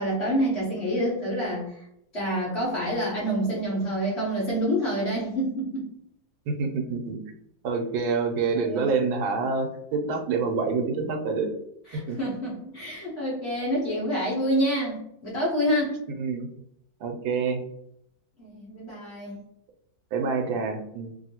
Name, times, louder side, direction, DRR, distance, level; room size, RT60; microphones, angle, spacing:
voice 1, 0.0-1.8 2.1-5.9 8.6-8.8 11.9-16.0 18.4-19.4, equal, 45° left, -5 dB, 0.9 m, -27 dB
voice 2, 6.5-7.2 7.6-11.5 12.1-12.2 16.2-16.5 17.0-17.6 20.1-21.1, right 4 dB, 90° right, 4 dB, 1.4 m, -27 dB
2.9 x 2.7 x 2.8 m, 0.75 s
omnidirectional pair, 2.1 m